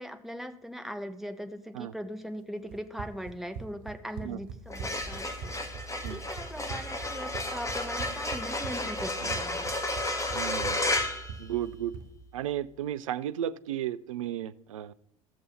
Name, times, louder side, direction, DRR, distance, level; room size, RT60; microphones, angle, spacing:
voice 1, 0.0-5.5 5.9-9.7, equal, ahead, 8 dB, 1.1 m, -40 dB
Run, 2.7-12.1, right 6 dB, 60° right, 0.9 m, -43 dB
sound 1, 4.6-12.1, left 1 dB, 20° left, 1.8 m, -33 dB
voice 2, 10.3-10.9 11.4-11.9 12.3-14.9, right 11 dB, 75° right, 16 dB, 0.4 m, -34 dB
15.5 x 6.8 x 4.2 m, 0.83 s
figure-of-eight pair, 65°, 17 cm